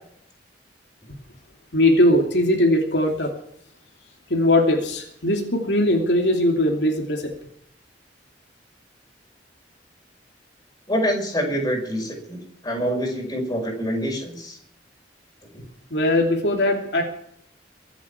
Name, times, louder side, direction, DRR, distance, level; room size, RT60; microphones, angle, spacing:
voice 1, 1.7-3.4 4.3-7.3 15.9-17.0, left 1 dB, 75° left, 1 dB, 2.8 m, -20 dB
voice 2, 10.9-14.6, equal, 20° left, 1 dB, 5.5 m, -26 dB
23.5 x 8.3 x 7.2 m, 0.69 s
head